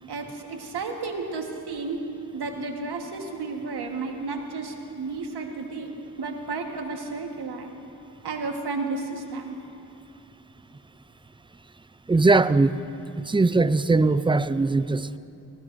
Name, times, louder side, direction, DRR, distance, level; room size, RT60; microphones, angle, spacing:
voice 1, 0.1-2.0 2.3-7.7 8.2-9.6, right 3 dB, 90° right, 3 dB, 1.4 m, -32 dB
voice 2, 12.1-12.8 13.2-15.2, right 3 dB, 15° right, 14 dB, 0.4 m, -20 dB
21.0 x 19.0 x 2.6 m, 2.6 s
cardioid pair, 60°, 38 cm